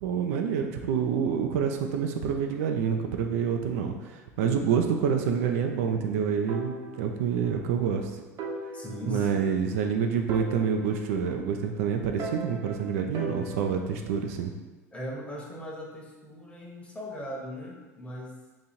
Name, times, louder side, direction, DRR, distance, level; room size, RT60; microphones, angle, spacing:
voice 1, 0.0-8.1 9.1-14.5, right 7 dB, 65° right, 4 dB, 0.4 m, -27 dB
sound 1, 6.5-7.7 7.9-8.0 8.4-9.9 10.3-11.7 12.2-14.0, right 2 dB, 45° right, 0.7 m, -39 dB
voice 2, 8.7-9.5 14.9-18.4, equal, 15° left, -2 dB, 1.0 m, -38 dB
2.9 x 2.6 x 4.2 m, 1.2 s
hypercardioid pair, 75°, 8 cm